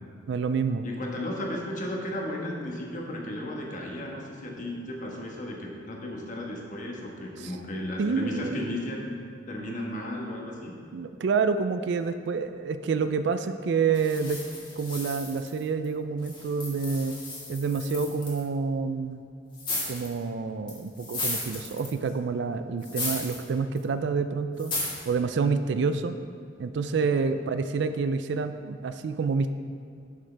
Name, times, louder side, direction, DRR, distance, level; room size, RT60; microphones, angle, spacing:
voice 1, 0.3-0.8 7.4-7.5 8.0-8.7 10.9-14.4 14.8-17.2 17.5-19.2 19.9-24.7 25.1-26.2 26.6-29.5, right 5 dB, 65° right, 10 dB, 0.4 m, -28 dB
voice 2, 0.8-9.0 9.5-10.7 27.3-27.4, left 1 dB, 45° left, -1 dB, 1.3 m, -34 dB
sound 1, 13.9-15.9 16.2-18.4 19.5-20.2 20.7-22.1 22.8-23.4 23.8-23.9 24.6-25.1, left 2 dB, 25° left, 1.8 m, -35 dB
11.0 x 6.4 x 3.4 m, 2.4 s
head